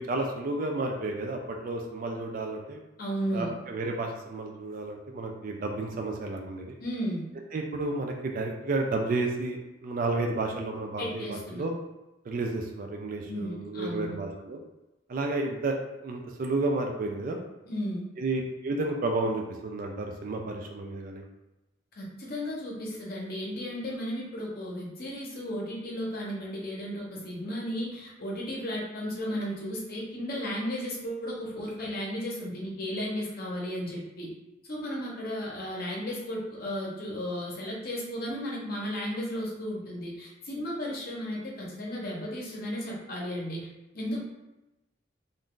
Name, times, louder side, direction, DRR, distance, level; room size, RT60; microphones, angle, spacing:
voice 1, 0.0-2.8 3.3-6.8 7.5-11.7 12.3-14.6 15.1-17.4 18.2-21.2, right 2 dB, 45° right, 2 dB, 0.3 m, -31 dB
voice 2, 3.0-3.5 6.8-7.2 11.0-11.6 13.3-14.2 17.7-18.0 21.9-34.3 34.6-43.7 43.9-44.2, equal, 50° left, -3 dB, 0.8 m, -34 dB
2.6 x 2.3 x 3.6 m, 1.0 s
head